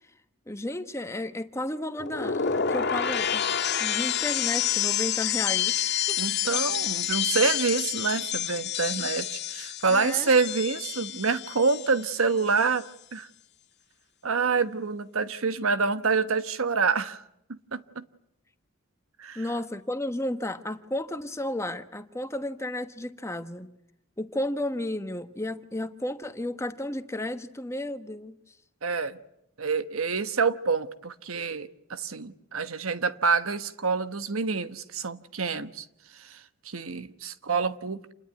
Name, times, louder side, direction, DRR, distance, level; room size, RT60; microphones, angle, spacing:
voice 1, 0.5-3.5 3.8-6.2 9.9-10.3 19.3-23.7 24.2-28.4, left 1 dB, 15° left, 1.2 m, -33 dB
sound 1, 2.0-12.1 12.4-12.8, left 9 dB, 50° left, 2.1 m, -28 dB
voice 2, 6.2-12.9 13.1-13.3 14.2-17.2 17.5-18.0 19.2-19.4 28.8-29.2 29.6-35.8 36.2-36.4 36.6-38.1, right 4 dB, 85° right, 1.2 m, -27 dB
28.5 x 20.5 x 9.5 m
head